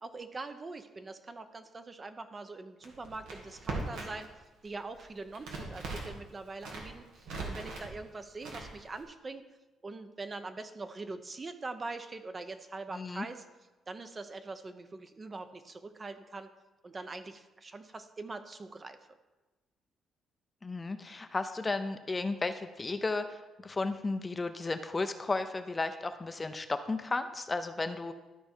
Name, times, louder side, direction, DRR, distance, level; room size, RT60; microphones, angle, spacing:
voice 1, 0.0-9.4 9.8-13.4 13.9-16.5 16.8-19.0, right 3 dB, 30° right, 9 dB, 0.7 m, -43 dB
Crackle, 2.8-4.3 4.6-6.2 6.5-7.9 8.4-9.0, right 3 dB, 90° right, 1.8 m, -40 dB
voice 2, 12.9-13.3 20.6-28.1, left 3 dB, 25° left, 9 dB, 0.5 m, -34 dB
12.5 x 4.6 x 4.4 m, 1.1 s
cardioid pair, 90°, 0 cm